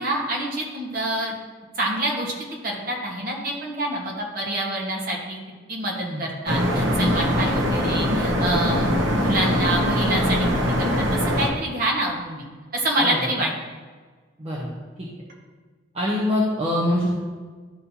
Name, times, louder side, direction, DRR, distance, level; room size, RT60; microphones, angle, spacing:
voice 1, 0.0-1.4 1.7-2.3 2.6-5.4 5.7-8.9 9.1-10.5 10.8-12.4 12.7-13.5, right 1 dB, 50° right, -1 dB, 1.4 m, -26 dB
sound 1, 6.5-11.5, equal, 75° right, 0.9 m, -22 dB
voice 2, 14.4-14.7 15.0-15.1 15.9-17.1, left 1 dB, 30° right, -6 dB, 1.0 m, -25 dB
11.5 x 4.2 x 2.8 m, 1.5 s
head